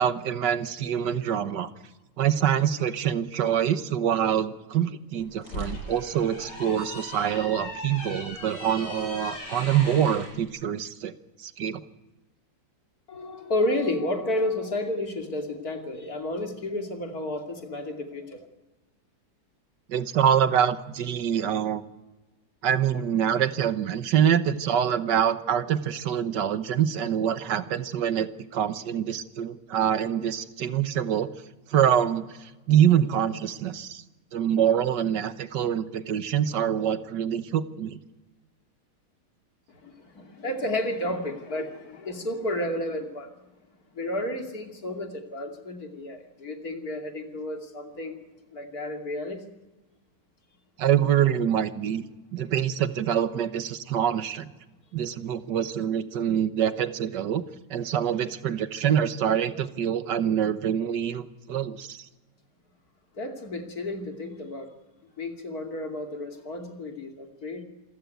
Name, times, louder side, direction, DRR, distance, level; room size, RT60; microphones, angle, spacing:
voice 1, 0.0-1.7 2.2-11.1 11.4-11.8 19.9-21.8 22.6-31.3 31.7-34.0 34.3-38.0 50.8-52.1 52.3-54.5 54.9-57.4 57.7-62.1, right 9 dB, 80° right, 12 dB, 1.7 m, -25 dB
sound 1, 5.2-10.3, left 1 dB, 90° left, 7.7 m, -38 dB
voice 2, 13.1-18.5 39.7-43.3 43.9-48.2 48.5-49.4 63.1-64.7 65.2-67.6, left 1 dB, 55° left, 4 dB, 3.1 m, -31 dB
26.5 x 15.0 x 9.2 m, 1.1 s
omnidirectional pair, 1.9 m